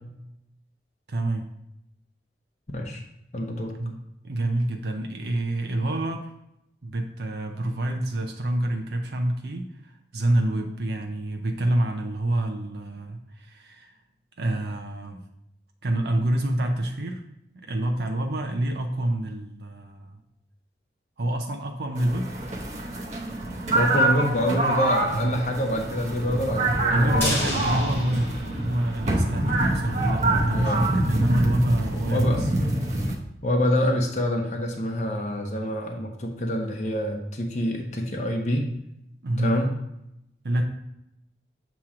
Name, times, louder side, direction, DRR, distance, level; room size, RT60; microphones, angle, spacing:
voice 1, 1.1-1.5 3.8-3.9 4.2-6.3 6.8-14.0 14.4-15.2 15.8-17.2 17.5-20.2 21.2-22.3 25.1-25.3 26.9-32.5 39.2-39.6 40.4-40.6, right 1 dB, 70° right, 3 dB, 0.6 m, -27 dB
voice 2, 2.7-3.0 3.3-3.7 23.7-27.5 30.5-30.8 31.9-32.4 33.4-38.7 39.4-39.7, equal, 40° left, 1 dB, 0.7 m, -26 dB
sound 1, 22.0-33.1, right 1 dB, 40° right, 0.8 m, -25 dB
sound 2, 27.2-29.4 29.7-29.8 30.1-30.2, left 1 dB, 15° left, 1.2 m, -31 dB
7.2 x 3.0 x 4.9 m, 0.82 s
head